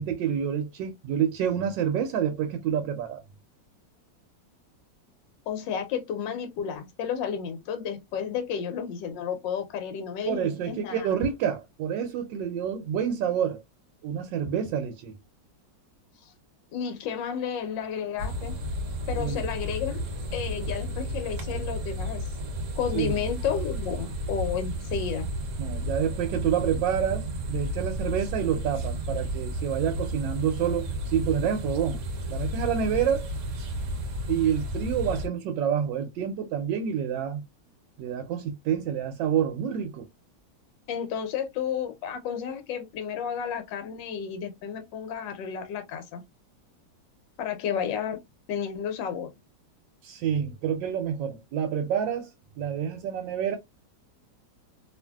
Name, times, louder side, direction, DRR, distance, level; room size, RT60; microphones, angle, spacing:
voice 1, 0.0-3.2 10.3-13.6 14.0-15.2 19.2-19.4 22.9-23.1 25.6-32.0 32.3-33.3 34.3-37.4 38.0-40.1 50.0-52.3 52.6-53.6, right 8 dB, 90° right, 1.3 m, -28 dB
voice 2, 5.5-11.1 16.2-16.3 16.7-18.5 19.1-22.3 22.7-25.3 40.9-46.2 47.4-48.2 48.5-49.3, left 7 dB, 85° left, 1.3 m, -32 dB
sound 1, 18.2-35.3, equal, 55° right, 1.0 m, -32 dB
2.9 x 2.5 x 2.2 m
omnidirectional pair, 1.9 m